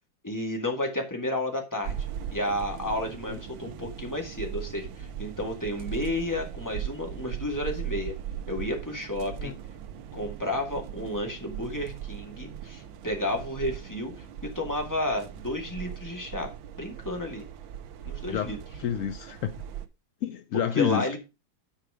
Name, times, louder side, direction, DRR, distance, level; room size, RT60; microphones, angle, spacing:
voice 1, 0.2-8.1 8.5-9.6 10.1-17.4 18.1-18.6 20.7-21.2, left 1 dB, 10° left, 2.1 m, -32 dB
sound 1, 1.8-19.9, right 9 dB, 85° right, 1.6 m, -39 dB
voice 2, 18.8-19.5 20.2-21.2, left 9 dB, 75° left, 0.7 m, -29 dB
10.5 x 4.8 x 4.9 m
omnidirectional pair, 2.1 m